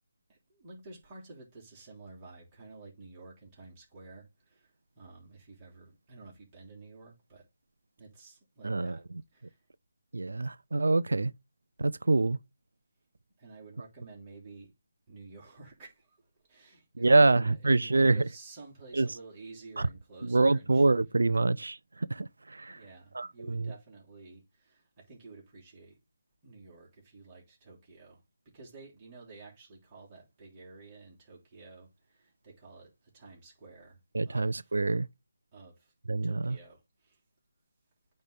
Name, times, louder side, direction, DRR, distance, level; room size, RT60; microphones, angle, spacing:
voice 1, 0.3-7.5 8.0-9.1 9.3-9.6 13.4-14.7 15.1-20.8 22.7-26.0 26.4-34.7 35.5-35.9 36.2-37.2, right 3 dB, 25° right, 3.0 m, -51 dB
voice 2, 8.6-9.0 10.1-11.3 11.8-12.4 17.0-18.2 18.9-19.1 19.8-19.9 20.2-22.8 23.1-23.7 34.1-35.1 36.1-36.6, right 3 dB, 75° right, 0.4 m, -26 dB
8.9 x 3.2 x 3.6 m
figure-of-eight pair, 155°, 0 cm